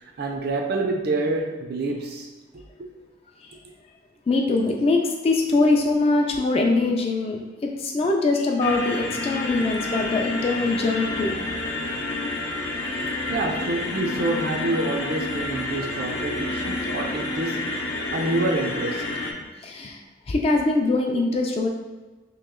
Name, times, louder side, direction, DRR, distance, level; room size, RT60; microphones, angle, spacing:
voice 1, 0.2-2.3 2.5-2.9 13.3-19.1, right 2 dB, 55° right, 2 dB, 0.5 m, -27 dB
voice 2, 4.3-11.4 19.6-20.0 20.3-21.7, left 3 dB, 30° left, 1 dB, 0.3 m, -22 dB
sound 1, 8.6-19.3, left 2 dB, 70° left, 0.6 m, -29 dB
3.0 x 2.8 x 3.7 m, 1.3 s
head